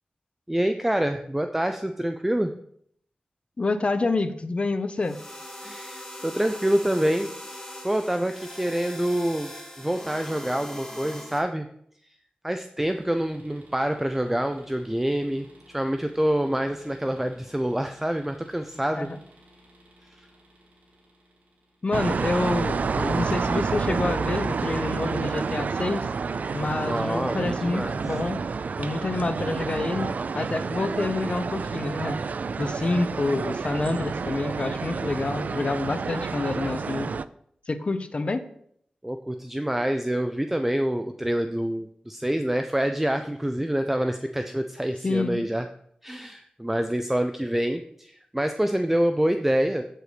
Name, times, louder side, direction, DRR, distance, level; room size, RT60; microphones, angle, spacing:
voice 1, 0.5-2.5 5.6-7.3 7.8-9.5 9.8-11.7 12.4-19.1 20.2-20.3 26.8-28.0 39.0-45.7 46.0-49.8, right 1 dB, 10° right, 7 dB, 0.5 m, -26 dB
voice 2, 3.6-5.2 19.0-19.2 21.8-26.0 26.5-28.4 28.8-30.1 30.3-32.2 32.6-37.1 37.7-38.4 45.0-45.4, left 3 dB, 45° left, 9 dB, 0.9 m, -27 dB
sound 1, 5.0-11.4, left 1 dB, 15° left, 2.4 m, -41 dB
sound 2, 12.8-22.3, equal, 90° right, 3.3 m, -56 dB
sound 3, 21.9-37.2, right 5 dB, 65° right, 0.4 m, -29 dB
8.1 x 7.7 x 5.0 m, 0.67 s
wide cardioid pair, 120°, 3 cm